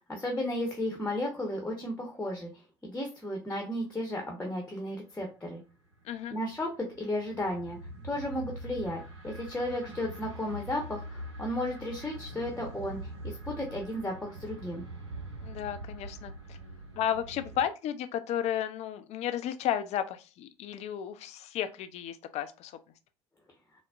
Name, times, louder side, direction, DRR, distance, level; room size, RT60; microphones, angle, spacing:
voice 1, 0.0-2.5 2.8-5.6 6.3-7.8 8.0-13.0 13.2-14.8, left 1 dB, 10° left, 2 dB, 0.9 m, -34 dB
sound 1, 5.9-17.7, right 1 dB, 85° right, 0.8 m, -43 dB
voice 2, 6.0-6.3 15.4-16.6 17.0-22.7, left 10 dB, 50° left, 10 dB, 0.4 m, -33 dB
3.9 x 2.1 x 2.3 m, 0.32 s
hypercardioid pair, 65°, 14 cm